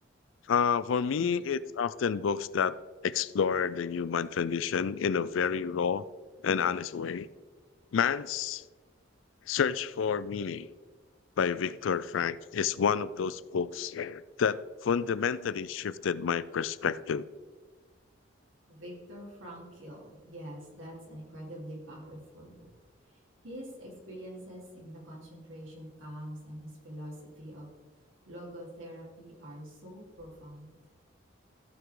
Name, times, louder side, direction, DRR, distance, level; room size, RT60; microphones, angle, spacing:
voice 1, 0.5-2.8 3.0-6.0 6.4-7.3 7.9-8.6 9.5-10.7 11.4-17.3, left 7 dB, 80° left, 0.4 m, -29 dB
voice 2, 1.2-1.5 18.7-22.7 23.1-27.7 28.3-30.7, equal, 85° right, 3.6 m, -45 dB
15.0 x 5.9 x 3.7 m
head